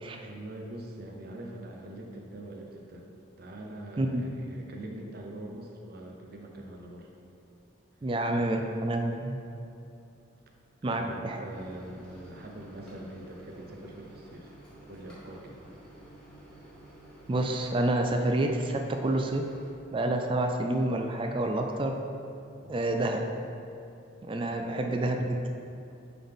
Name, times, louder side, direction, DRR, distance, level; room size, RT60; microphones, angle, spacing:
voice 1, 0.2-3.0 3.4-7.1 8.3-8.8 10.9-14.5 14.8-15.6 22.6-22.7 24.5-24.8, right 1 dB, 50° right, 0 dB, 0.8 m, -43 dB
voice 2, 8.0-9.4 10.8-11.4 17.3-19.4 19.9-21.9 22.7-23.2 24.3-25.4, right 1 dB, 25° right, 4 dB, 0.3 m, -28 dB
Microwave oven, 11.5-19.7, right 1 dB, 5° left, 1.5 m, -51 dB
9.4 x 3.8 x 3.6 m, 2.7 s
head